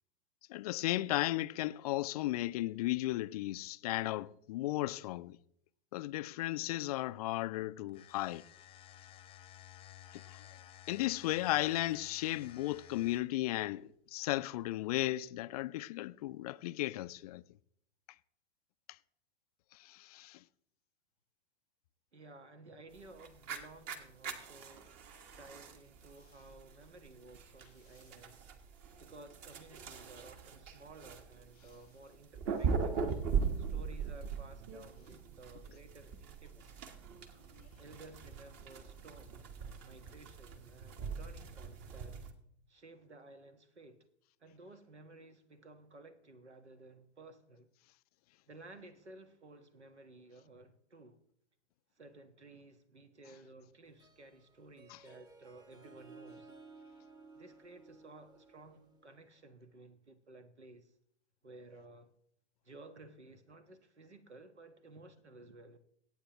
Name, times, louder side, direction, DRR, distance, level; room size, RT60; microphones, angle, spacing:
voice 1, 0.5-5.4 5.9-8.4 10.3-10.4 10.9-17.4 19.8-20.4 54.9-55.0, left 16 dB, 35° left, 0.4 m, -35 dB
sound 1, 7.9-13.4, left 11 dB, 15° left, 0.8 m, -55 dB
voice 2, 22.1-24.9 25.4-28.5 29.0-33.0 33.6-36.9 37.8-39.5 39.8-42.2 42.7-44.0 44.4-47.7 48.5-51.2 52.0-56.5 57.4-60.9 61.4-62.1 62.6-65.8, right 2 dB, 80° right, 1.4 m, -55 dB
sound 2, 23.0-42.3, right 6 dB, 35° right, 1.5 m, -40 dB
Harp, 53.9-59.4, right 4 dB, 10° right, 1.0 m, -57 dB
23.0 x 9.0 x 3.0 m
figure-of-eight pair, 105°, 34 cm